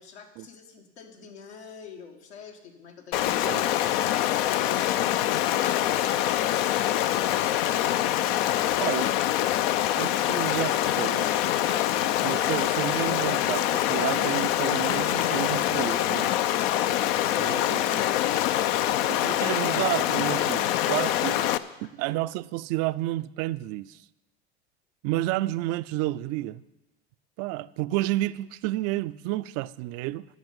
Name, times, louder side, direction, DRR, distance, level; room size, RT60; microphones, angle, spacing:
voice 1, 0.0-4.3 20.8-21.1 21.8-21.9, left 6 dB, 80° left, 2.1 m, -46 dB
Stream, 3.1-21.6, left 12 dB, 65° left, 0.6 m, -25 dB
voice 2, 8.8-9.1 10.0-11.4 12.2-16.3 17.4-18.0 19.1-21.3 21.8-24.0 25.0-26.6 27.4-30.3, right 17 dB, 50° right, 0.5 m, -30 dB
11.0 x 6.9 x 9.4 m
hypercardioid pair, 90°, 32 cm